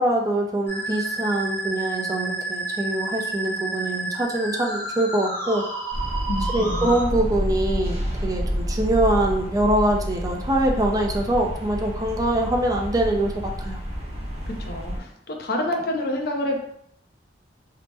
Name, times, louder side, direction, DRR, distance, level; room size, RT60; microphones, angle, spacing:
voice 1, 0.0-5.7 6.5-13.8, right 1 dB, 20° right, 1 dB, 0.4 m, -24 dB
Musical instrument, 0.7-7.0, right 2 dB, 15° left, 0.7 m, -30 dB
sound 1, 5.9-15.0, equal, 35° right, 0.8 m, -29 dB
voice 2, 6.3-6.9 14.5-16.6, left 1 dB, 60° left, 2 dB, 0.5 m, -28 dB
2.8 x 2.0 x 3.3 m, 0.70 s
head